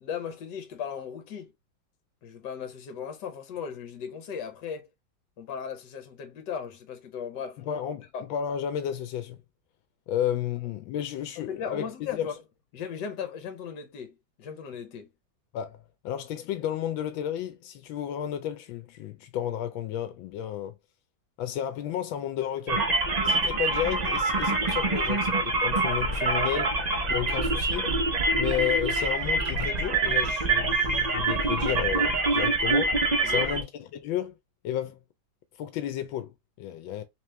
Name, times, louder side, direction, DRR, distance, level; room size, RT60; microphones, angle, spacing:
voice 1, 0.0-1.5 2.2-4.9 5.4-7.8 8.1-8.3 11.4-12.4 12.7-15.1 33.2-33.5, left 7 dB, 70° left, 1.5 m, -37 dB
voice 2, 7.7-9.4 10.1-11.9 12.1-12.3 15.5-20.8 21.4-22.8 23.2-26.8 27.1-27.9 28.4-33.0 33.2-34.3 34.6-35.0 35.6-37.0, left 10 dB, 85° left, 1.4 m, -32 dB
sound 1, 22.7-33.6, right 3 dB, 60° right, 0.4 m, -25 dB
3.6 x 3.0 x 3.1 m
omnidirectional pair, 2.1 m